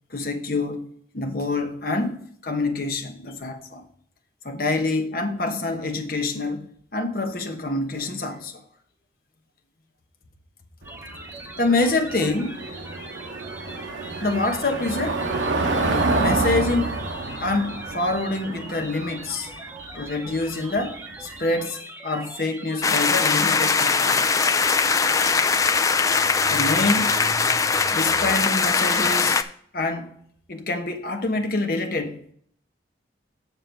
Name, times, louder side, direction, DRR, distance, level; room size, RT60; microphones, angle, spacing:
voice 1, 0.1-0.8 1.1-3.8 4.4-8.6 11.6-12.6 14.2-15.2 16.2-16.9 17.4-19.5 19.9-24.4 26.5-27.2 27.6-29.4 29.7-30.2 30.5-32.3, left 2 dB, 50° left, 1.1 m, -26 dB
robot talk, 10.8-23.7, right 1 dB, 10° right, 0.8 m, -41 dB
Car passing by / Engine, 10.8-21.5, right 2 dB, 85° right, 1.0 m, -28 dB
sound 1, 22.8-29.4, left 5 dB, 20° left, 0.3 m, -21 dB
6.9 x 6.6 x 4.5 m
head